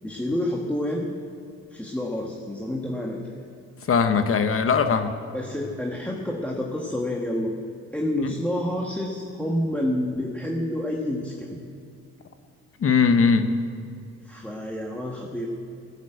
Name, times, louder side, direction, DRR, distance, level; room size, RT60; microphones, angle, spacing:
voice 1, 0.0-1.1 1.7-3.4 5.3-7.5 7.9-11.6 14.2-15.5, left 1 dB, 5° left, -1 dB, 1.5 m, -28 dB
voice 2, 3.9-5.1 8.2-8.3 12.8-13.5, left 5 dB, 45° left, 8 dB, 1.0 m, -20 dB
17.5 x 7.4 x 8.0 m, 2.4 s
cardioid pair, 90°, 30 cm